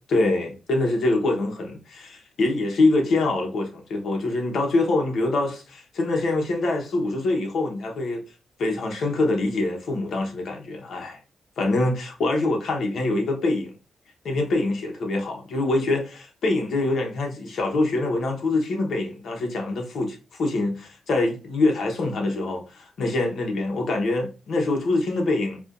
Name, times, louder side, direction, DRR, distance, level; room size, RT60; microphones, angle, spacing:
voice 1, 0.1-8.2 8.6-11.2 11.6-13.7 14.2-25.6, left 2 dB, 75° left, 1.0 m, -24 dB
4.8 x 2.4 x 2.5 m
cardioid pair, 65°, 0 cm